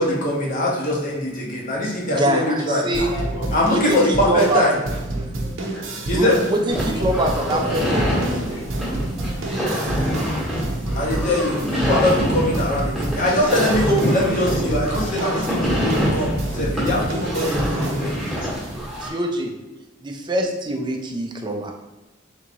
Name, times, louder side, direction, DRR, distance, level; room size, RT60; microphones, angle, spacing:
voice 1, 0.0-2.8 3.5-4.8 6.1-6.3 11.0-18.1, left 1 dB, 45° left, -2 dB, 1.0 m, -22 dB
voice 2, 2.1-3.1 3.7-4.6 6.1-8.2 19.0-19.5 20.0-21.7, right 1 dB, 25° right, 2 dB, 0.5 m, -24 dB
voice 3, 2.9-4.1 5.7-7.0 7.3-8.6, left 1 dB, 75° left, -2 dB, 1.1 m, -32 dB
sound 1, 2.9-18.3, right 1 dB, 85° right, 0.7 m, -29 dB
sound 2, 6.7-19.1, equal, ahead, 1.2 m, -25 dB
3.4 x 3.1 x 3.8 m, 1.1 s
head